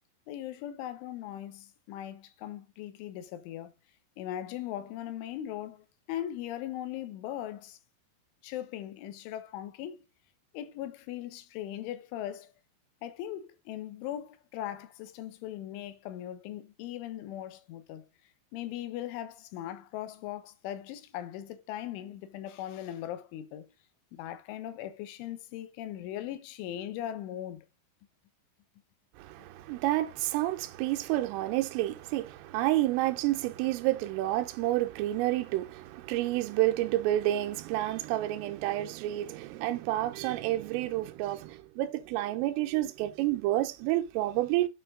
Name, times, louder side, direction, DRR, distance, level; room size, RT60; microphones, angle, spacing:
voice 1, 0.3-3.7 4.2-7.8 8.4-10.0 10.5-12.5 13.0-18.1 18.5-23.7 24.1-27.7, left 12 dB, 80° left, 3.3 m, -39 dB
voice 2, 29.2-44.7, right 15 dB, 85° right, 3.5 m, -29 dB
9.1 x 6.6 x 3.8 m
omnidirectional pair, 5.8 m